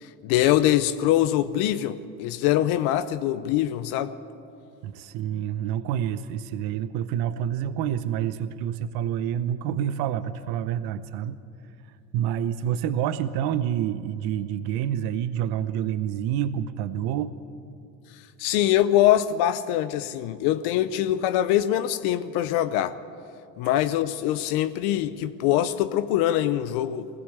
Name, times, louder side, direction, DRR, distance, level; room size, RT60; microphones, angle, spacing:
voice 1, 0.0-4.1 18.4-22.9 23.6-27.1, left 12 dB, 75° left, 12 dB, 0.8 m, -23 dB
voice 2, 4.8-11.4 12.1-17.3, right 10 dB, 70° right, 13 dB, 0.8 m, -28 dB
20.0 x 16.0 x 8.0 m, 2.5 s
supercardioid pair, 90°, 39 cm